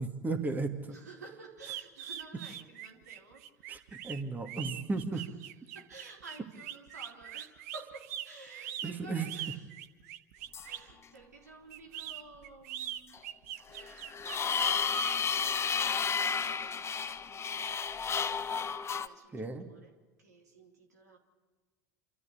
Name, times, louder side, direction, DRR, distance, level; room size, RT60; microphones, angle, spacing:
voice 1, 0.0-0.8 3.7-5.2 8.8-9.3 19.3-19.7, right 3 dB, 20° right, 6 dB, 2.5 m, -34 dB
voice 2, 0.9-3.7 5.1-5.3 5.7-9.7 10.6-13.2 13.6-17.7 18.9-21.2, right 3 dB, 90° right, 0 dB, 3.6 m, -52 dB
sound 1, 1.6-10.9 11.7-15.2, right 11 dB, 70° right, 1.1 m, -42 dB
sound 2, 10.5-10.7 13.1-13.2 13.7-19.1, left 6 dB, 30° left, 1.2 m, -32 dB
27.5 x 13.5 x 8.7 m, 1.3 s
hypercardioid pair, 70°, 9 cm